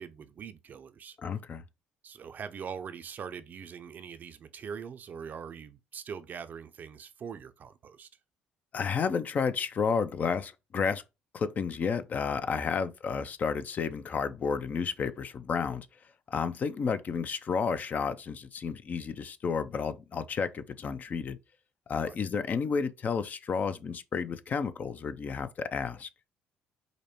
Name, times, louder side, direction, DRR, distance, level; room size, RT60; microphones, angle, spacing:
voice 1, 0.0-1.2 2.0-8.1 12.7-12.9 22.0-22.2, right 7 dB, 50° right, 0.5 m, -42 dB
voice 2, 1.2-1.6 8.7-11.0 11.3-15.9 16.3-21.4 21.9-26.1, left 5 dB, 45° left, 0.5 m, -31 dB
5.0 x 2.1 x 3.0 m
supercardioid pair, 70°, 4 cm